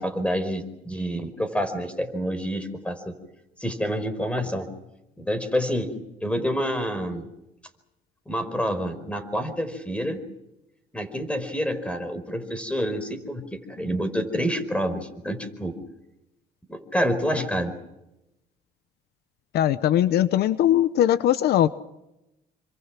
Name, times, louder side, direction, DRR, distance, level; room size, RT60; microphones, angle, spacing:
voice 1, 0.0-3.0 3.6-4.7 5.2-5.9 6.2-7.3 8.3-10.2 10.9-15.7 16.7-17.7, equal, 5° left, 11 dB, 4.8 m, -28 dB
voice 2, 19.5-21.7, left 11 dB, 70° left, 14 dB, 1.0 m, -20 dB
28.5 x 25.5 x 6.1 m, 0.93 s
cardioid pair, 110°, 17 cm